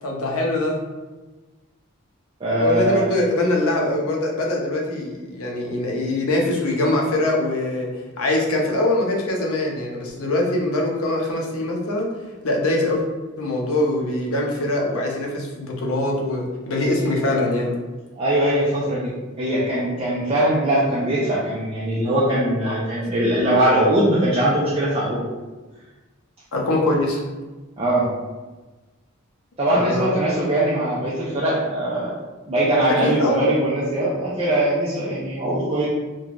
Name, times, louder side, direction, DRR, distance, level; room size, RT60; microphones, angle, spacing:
voice 1, 0.0-0.8 2.6-7.9 8.2-12.1 12.4-13.0 13.4-17.7 22.7-22.8 26.5-27.2 29.7-30.1 32.9-33.5, left 1 dB, 90° left, -1 dB, 0.6 m, -23 dB
voice 2, 2.4-3.0 18.2-19.1 19.4-25.2 27.8-28.1 29.6-32.1 32.5-35.9, right 1 dB, 25° right, -8 dB, 0.4 m, -21 dB
3.1 x 2.2 x 2.5 m, 1.2 s
head